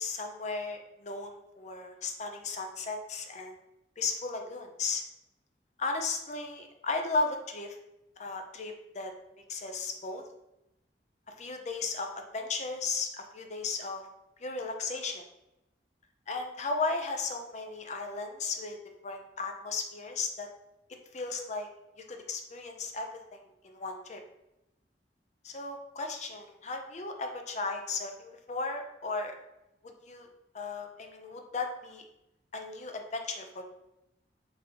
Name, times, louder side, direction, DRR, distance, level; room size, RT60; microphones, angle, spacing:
voice 1, 0.0-3.6 4.0-5.0 5.8-7.8 8.2-9.1 9.5-10.2 11.4-14.0 14.4-15.2 16.3-18.8 19.0-20.5 21.1-21.7 22.0-24.2 25.4-29.4 29.8-30.3 30.5-32.0 32.5-33.6, left 3 dB, 40° left, 4 dB, 0.5 m, -35 dB
3.9 x 2.8 x 3.8 m, 0.88 s
head